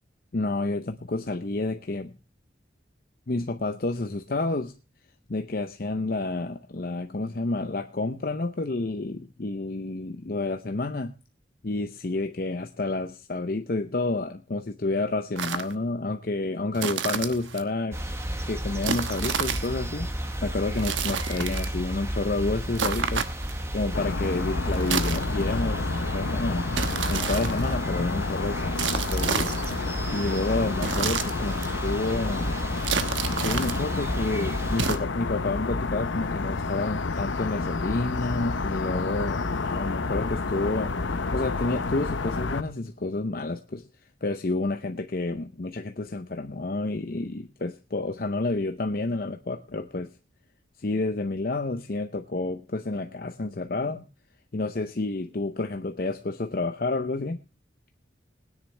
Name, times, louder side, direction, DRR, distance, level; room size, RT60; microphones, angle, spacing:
voice 1, 0.3-2.1 3.3-4.7 5.3-11.1 11.6-18.0 18.4-20.1 20.4-23.5 23.7-26.7 27.1-29.8 30.1-32.6 33.4-43.9 44.2-50.1 50.8-54.1 54.5-57.4, left 2 dB, 50° left, 8 dB, 0.7 m, -30 dB
sound 1, 15.4-15.7 16.7-17.6 18.8-19.7 20.7-21.8 22.7-23.6 24.7-25.6 26.7-27.7 28.7-29.8 30.8-31.7 32.8-33.8 34.7-35.0, right 6 dB, 85° right, 1.1 m, -30 dB
sound 2, 17.9-35.0, right 1 dB, 15° right, 1.2 m, -33 dB
sound 3, 23.9-42.6, left 3 dB, 85° left, 0.8 m, -30 dB
20.5 x 9.9 x 3.3 m, 0.31 s
head